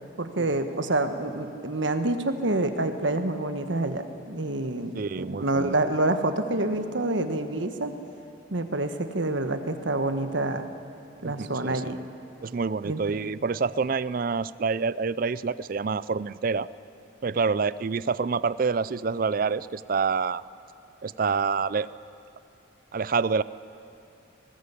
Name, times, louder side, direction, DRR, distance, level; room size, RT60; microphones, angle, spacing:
voice 1, 0.2-7.9 8.5-10.7 11.2-12.0 12.8-13.0, right 2 dB, 70° right, 8 dB, 1.5 m, -27 dB
voice 2, 4.9-5.7 11.2-12.0 12.4-16.7 17.2-20.4 21.0-21.9 22.9-23.4, right 5 dB, 45° right, 17 dB, 0.4 m, -27 dB
19.5 x 19.5 x 8.4 m, 2.9 s
head